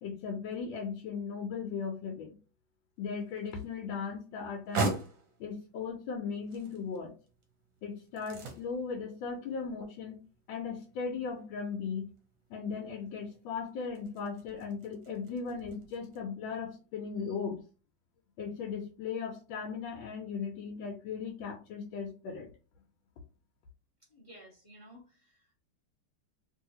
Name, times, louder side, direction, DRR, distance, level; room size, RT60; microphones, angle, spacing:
voice 1, 0.0-2.3 3.0-5.0 5.4-7.1 7.8-10.2 10.5-12.1 12.5-17.6 18.4-22.5, left 5 dB, 85° left, 2 dB, 1.4 m, -37 dB
sound 1, 3.0-16.2, right 3 dB, 60° right, 0.9 m, -42 dB
voice 2, 24.1-25.5, equal, 40° left, -3 dB, 0.4 m, -55 dB
3.0 x 2.7 x 2.8 m, 0.35 s
omnidirectional pair, 2.1 m